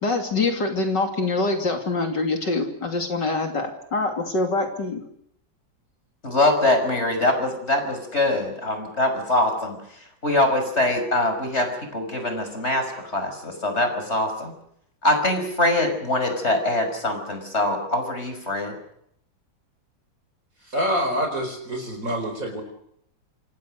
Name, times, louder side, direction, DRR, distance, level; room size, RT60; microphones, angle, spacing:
voice 1, 0.0-5.0, left 3 dB, 65° left, 3 dB, 3.6 m, -25 dB
voice 2, 6.2-9.8 10.2-14.5 15.0-18.8, left 2 dB, 35° left, 6 dB, 6.1 m, -23 dB
voice 3, 20.7-22.6, equal, 45° right, 4 dB, 4.9 m, -26 dB
27.0 x 26.0 x 6.6 m, 0.71 s
omnidirectional pair, 2.0 m